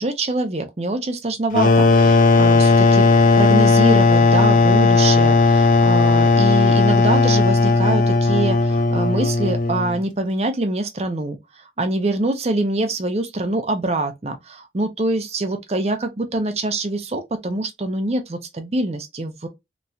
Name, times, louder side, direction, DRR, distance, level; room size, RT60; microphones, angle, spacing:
voice 1, 0.0-3.1 3.4-19.5, right 2 dB, 35° right, 0.6 m, -24 dB
sound 1, 1.5-10.0, left 3 dB, 45° left, 0.4 m, -15 dB
3.0 x 2.7 x 2.2 m
head